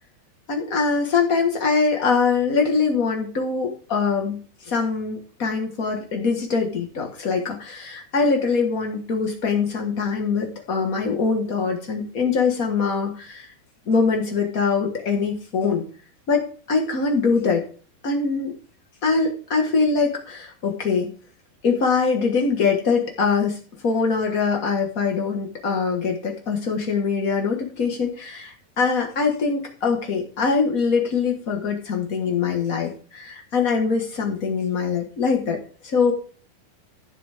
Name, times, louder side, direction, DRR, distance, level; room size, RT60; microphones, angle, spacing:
voice 1, 0.5-13.5 13.9-15.8 16.3-17.6 18.0-18.5 19.0-21.1 21.6-23.6 23.8-36.1, left 5 dB, 55° left, 1 dB, 0.9 m, -23 dB
15.5 x 8.2 x 3.5 m, 0.41 s
omnidirectional pair, 4.0 m